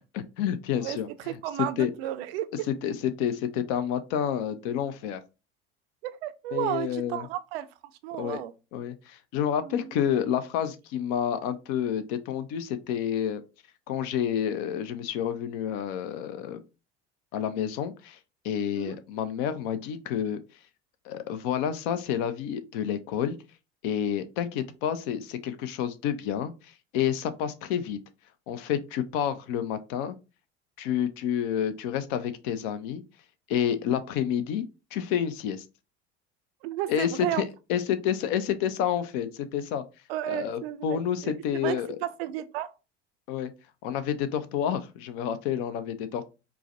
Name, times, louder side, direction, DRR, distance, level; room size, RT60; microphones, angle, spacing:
voice 1, 0.1-1.3 1.8-1.9 2.8-5.2 6.5-7.3 8.2-8.4 8.7-13.4 13.9-16.6 17.3-18.2 18.4-20.4 21.0-23.4 23.8-28.0 28.5-30.1 30.8-33.0 33.5-34.6 34.9-35.6 36.9-39.8 40.2-42.0 43.3-43.5 43.8-46.2, left 9 dB, 50° left, 0.5 m, -29 dB
voice 2, 1.3-2.7 6.0-7.7 8.0-8.5 9.6-9.9 18.7-19.0 36.6-37.4 40.1-42.7, right 14 dB, 60° right, 0.5 m, -33 dB
4.6 x 2.1 x 2.5 m
figure-of-eight pair, 65°, 35 cm